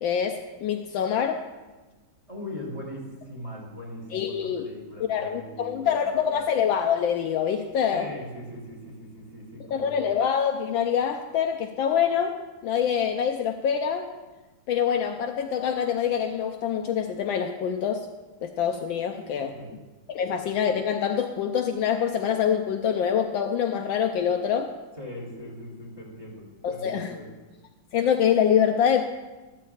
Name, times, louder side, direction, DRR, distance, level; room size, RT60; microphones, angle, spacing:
voice 1, 0.0-1.4 4.1-4.7 5.0-8.1 9.7-14.1 14.7-18.1 18.4-19.5 20.1-24.7 26.6-27.1 27.9-29.0, left 8 dB, 75° left, 5 dB, 1.3 m, -25 dB
voice 2, 2.3-6.5 7.9-10.1 19.4-19.8 25.0-27.3, left 1 dB, 15° right, -4 dB, 2.6 m, -40 dB
13.5 x 13.0 x 2.4 m, 1.2 s
omnidirectional pair, 2.3 m